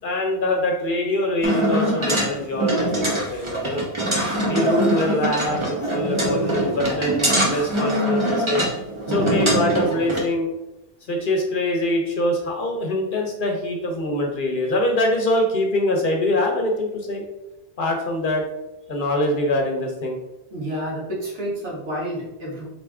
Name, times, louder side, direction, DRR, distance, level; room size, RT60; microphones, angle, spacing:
voice 1, 0.0-3.9 4.5-8.6 9.1-10.5 11.1-17.2 17.8-18.5 18.9-20.2, left 1 dB, 50° left, 2 dB, 0.9 m, -24 dB
sound 1, 1.4-10.2, right 1 dB, 25° right, 1.0 m, -23 dB
voice 2, 20.5-22.7, equal, 75° right, -5 dB, 1.7 m, -29 dB
4.1 x 3.4 x 3.5 m, 0.97 s
omnidirectional pair, 1.2 m